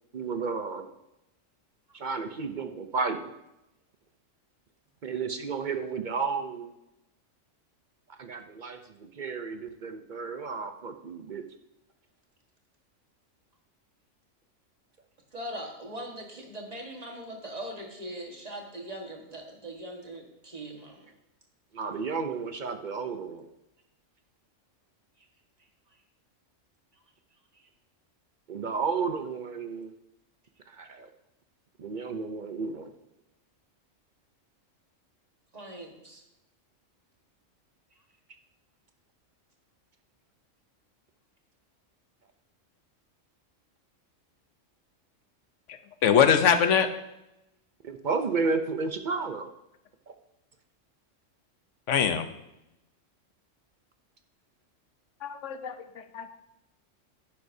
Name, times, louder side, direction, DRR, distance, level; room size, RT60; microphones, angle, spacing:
voice 1, 0.1-0.9 1.9-3.3 5.0-6.7 8.1-11.4 21.7-23.5 28.5-29.9 30.7-31.1 31.8-32.9 47.8-49.5 50.1-50.2, right 4 dB, 50° right, 7 dB, 0.6 m, -32 dB
voice 2, 15.3-21.1 25.2-25.3 25.9-26.0 26.9-27.0 27.5-27.7 35.5-36.2 37.9-38.0, right 1 dB, 30° right, 1 dB, 1.6 m, -41 dB
voice 3, 46.0-46.9 51.9-52.3 55.2-55.7 56.1-56.3, left 7 dB, 70° left, 9 dB, 1.1 m, -22 dB
10.5 x 9.7 x 2.7 m, 0.88 s
omnidirectional pair, 1.3 m